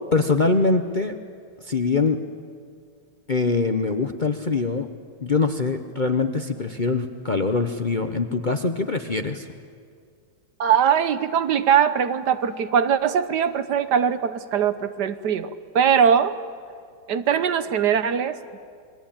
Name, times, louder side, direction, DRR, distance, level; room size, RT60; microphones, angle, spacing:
voice 1, 0.1-1.1 1.7-2.2 3.3-4.9 5.2-9.5, left 3 dB, 35° left, 6 dB, 0.8 m, -23 dB
voice 2, 10.6-16.4 17.1-18.6, right 8 dB, 70° right, 12 dB, 1.5 m, -21 dB
29.0 x 21.5 x 8.9 m, 2.2 s
omnidirectional pair, 1.9 m